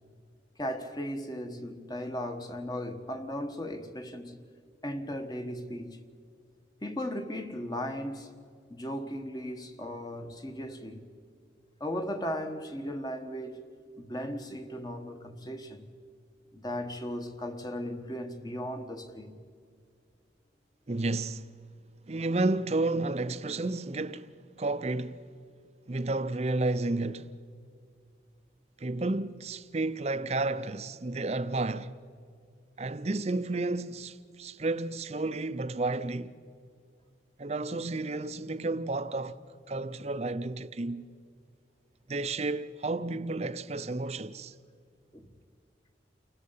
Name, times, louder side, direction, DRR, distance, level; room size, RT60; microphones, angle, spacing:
voice 1, 0.6-4.4 4.8-6.0 6.8-8.3 8.7-11.1 11.8-13.6 14.0-15.9 16.5-19.4 45.1-45.3, equal, 20° left, 1.3 m, -37 dB
voice 2, 20.9-21.5 22.1-24.3 24.6-25.3 25.9-27.3 28.8-31.9 32.8-36.3 37.4-39.4 39.7-41.1 42.1-44.5, right 2 dB, 35° right, 0.6 m, -31 dB
29.5 x 19.5 x 5.6 m
head